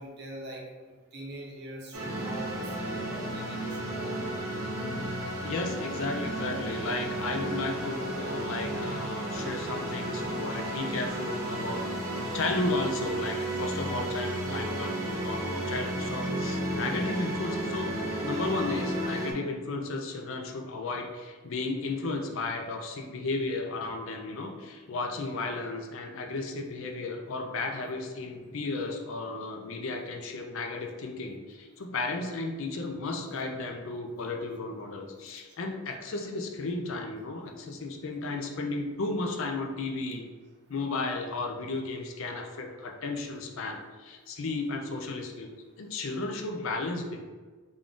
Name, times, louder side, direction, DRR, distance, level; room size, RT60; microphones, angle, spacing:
voice 1, 0.0-4.4 18.5-18.6, right 1 dB, 50° right, -1 dB, 0.7 m, -43 dB
sound 1, 1.9-19.3, right 1 dB, 80° right, 0.8 m, -33 dB
voice 2, 5.4-11.8 12.3-40.3 40.7-45.5 45.8-47.2, left 3 dB, 65° left, 3 dB, 0.5 m, -34 dB
3.7 x 2.4 x 3.6 m, 1.4 s
head